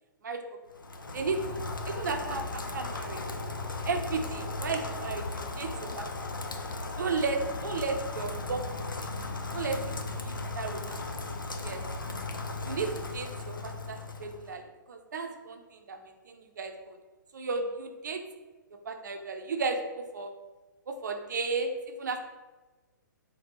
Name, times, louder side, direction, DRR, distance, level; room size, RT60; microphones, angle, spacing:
Rain, 0.7-14.5, left 3 dB, 80° left, 0.5 m, -36 dB
voice 1, 1.1-1.6 1.9-3.2 3.9-6.3 7.0-8.6 9.0-9.1 9.5-9.8 10.2-11.0 11.6-11.8 12.6-14.6 14.9-15.6 15.9-16.0 16.3-17.0 17.3-18.2 18.8-20.3 20.9-22.2, right 4 dB, 60° right, 5 dB, 0.5 m, -34 dB
3.5 x 3.3 x 2.8 m, 1.2 s
figure-of-eight pair, 120°, 11 cm